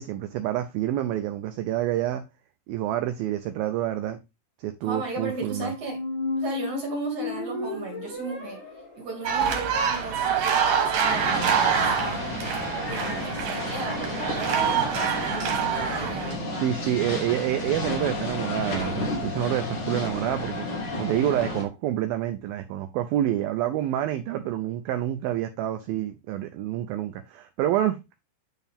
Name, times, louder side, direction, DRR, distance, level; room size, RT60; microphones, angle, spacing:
voice 1, 0.0-2.2 2.7-4.2 4.6-5.7 16.6-20.7 21.0-28.0, right 12 dB, 85° right, 2.1 m, -28 dB
voice 2, 4.8-6.0 6.4-8.6 9.0-12.3 12.8-16.7, right 3 dB, 50° right, 3.0 m, -36 dB
Squeak, 5.1-11.1, left 3 dB, 85° left, 5.3 m, -34 dB
sound 1, 9.3-16.4, right 7 dB, 65° right, 3.0 m, -26 dB
sound 2, 11.1-21.6, left 2 dB, 50° left, 1.6 m, -32 dB
9.2 x 4.6 x 3.5 m
omnidirectional pair, 4.9 m